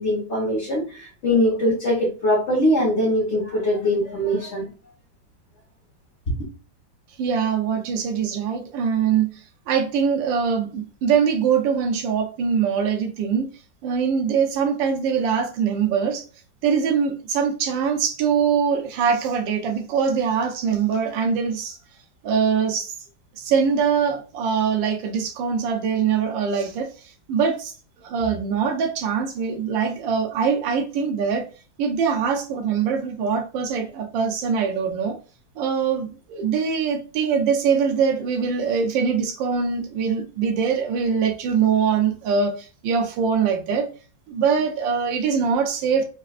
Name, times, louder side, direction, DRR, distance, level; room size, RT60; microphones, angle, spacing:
voice 1, 0.0-4.7, left 1 dB, 45° left, 1.2 m, -22 dB
voice 2, 7.2-9.4 9.7-13.5 13.8-16.2 16.6-21.8 22.2-22.9 23.4-26.9 27.3-27.7 28.0-31.4 31.8-35.2 35.6-43.9 44.3-46.0, right 6 dB, 80° right, 1.3 m, -23 dB
5.3 x 2.4 x 2.4 m
omnidirectional pair, 2.1 m